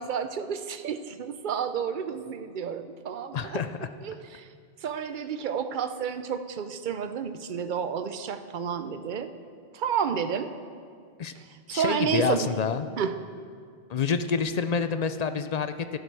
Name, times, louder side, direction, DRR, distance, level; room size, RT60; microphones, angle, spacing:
voice 1, 0.0-3.6 4.0-4.5 4.8-9.3 9.7-10.5 11.4-12.5 13.0-13.1, right 7 dB, 55° right, 10 dB, 0.7 m, -31 dB
voice 2, 3.3-3.8 11.2-11.3 11.7-12.9 13.9-16.0, left 5 dB, 55° left, 10 dB, 0.4 m, -27 dB
13.0 x 11.0 x 4.7 m, 2.1 s
omnidirectional pair, 1.1 m